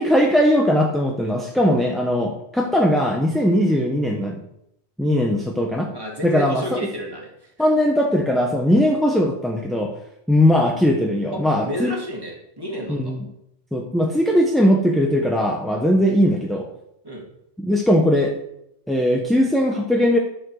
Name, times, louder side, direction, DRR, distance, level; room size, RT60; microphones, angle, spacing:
voice 1, 0.0-4.4 5.0-5.9 6.2-6.9 7.6-9.9 10.3-11.9 12.9-13.2 13.7-16.7 17.6-18.3 18.9-20.2, equal, ahead, 1 dB, 0.9 m, -19 dB
voice 2, 5.9-7.5 11.3-13.1 17.0-17.3, equal, 20° right, -2 dB, 2.7 m, -31 dB
11.5 x 5.6 x 6.4 m, 0.78 s
omnidirectional pair, 1.2 m